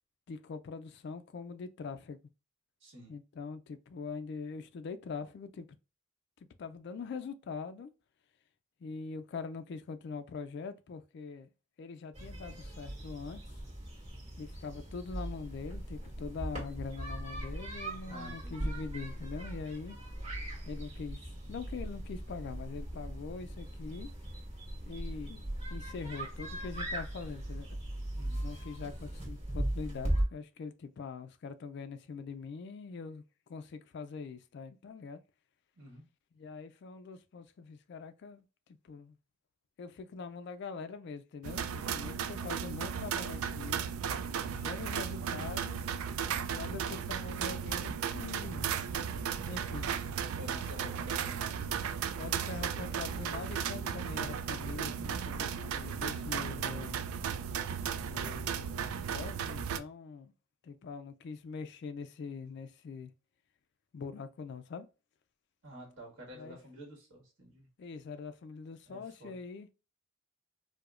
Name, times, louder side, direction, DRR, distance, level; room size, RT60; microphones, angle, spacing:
voice 1, 0.3-2.2 3.1-5.7 6.6-7.9 8.8-11.5 11.8-13.4 14.4-20.0 20.7-21.2 21.5-24.1 24.9-25.4 25.7-27.7 28.4-33.2 33.5-35.2 36.4-38.4 38.9-39.1 39.8-43.9 44.5-45.8 46.5-48.7 49.5-49.9 52.1-57.0 58.0-60.3 60.6-63.1 63.9-64.9 66.4-66.6 67.8-69.7, left 5 dB, 55° left, 0.3 m, -43 dB
voice 2, 2.8-3.1 18.1-18.8 28.1-28.5 35.7-36.0 50.4-51.9 52.4-53.0 65.6-67.7 68.9-69.4, equal, 60° right, 1.5 m, -50 dB
sound 1, 12.1-30.2, right 1 dB, 30° right, 1.6 m, -39 dB
sound 2, 41.4-59.8, right 7 dB, 85° right, 0.3 m, -35 dB
4.7 x 2.1 x 2.4 m
head